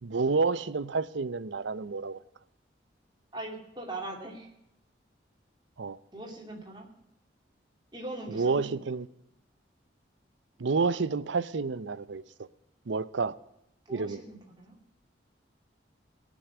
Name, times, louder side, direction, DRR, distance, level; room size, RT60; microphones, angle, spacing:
voice 1, 0.0-2.2 5.8-6.0 8.3-9.1 10.6-12.2 12.9-13.4 13.9-14.2, right 4 dB, 80° right, 0.6 m, -29 dB
voice 2, 3.3-4.5 6.1-6.9 7.9-8.7 13.9-14.7, right 2 dB, 25° right, 2.6 m, -40 dB
18.0 x 6.3 x 8.2 m
head